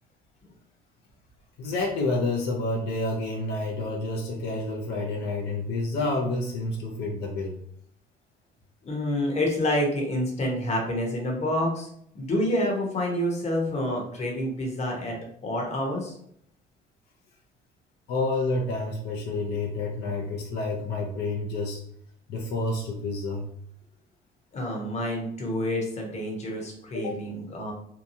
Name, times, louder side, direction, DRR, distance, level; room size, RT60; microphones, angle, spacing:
voice 1, 1.6-7.6 18.1-21.8 22.3-23.5 26.9-27.1, left 2 dB, 80° left, -1 dB, 0.6 m, -29 dB
voice 2, 8.8-11.9 12.1-15.2 15.4-16.2 24.5-27.7, left 1 dB, 40° left, 0 dB, 0.9 m, -28 dB
2.8 x 2.2 x 2.7 m, 0.67 s
cardioid pair, 110°, 17 cm